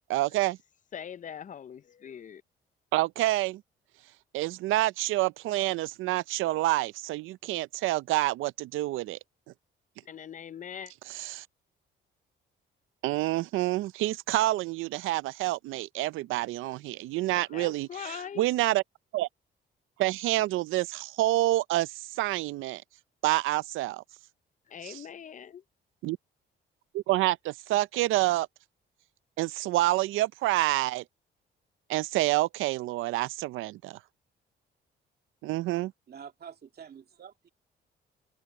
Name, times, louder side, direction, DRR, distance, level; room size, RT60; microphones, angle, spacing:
voice 1, 0.1-0.6 2.9-3.6 4.3-9.2 11.1-11.4 13.0-18.8 19.1-19.3 20.0-22.8 23.2-24.0 24.8-25.1 26.0-26.2 26.9-28.5 29.4-31.0 31.9-34.0 35.4-35.9, right 17 dB, 90° right, 0.5 m, -28 dB
voice 2, 0.9-2.4 10.1-10.9 17.5-18.5 24.7-25.6, left 8 dB, 40° left, 0.6 m, -41 dB
voice 3, 36.1-37.5, right 7 dB, 50° right, 2.4 m, -47 dB
cardioid pair, 90°, 20 cm